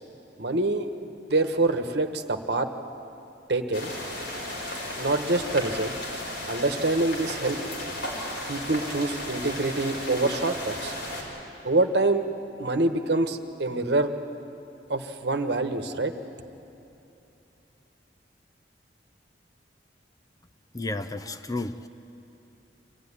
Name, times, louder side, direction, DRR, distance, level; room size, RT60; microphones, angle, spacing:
voice 1, 0.4-2.7 3.5-3.9 5.0-5.9 6.5-7.6 8.5-10.9 11.6-12.2 12.6-14.1 14.9-16.1, right 2 dB, 65° right, 7 dB, 1.3 m, -26 dB
sound 1, 3.7-11.2, left 1 dB, 75° left, 5.4 m, -34 dB
voice 2, 20.7-21.9, left 2 dB, 20° left, 9 dB, 0.6 m, -32 dB
24.5 x 15.5 x 9.8 m, 2.9 s
head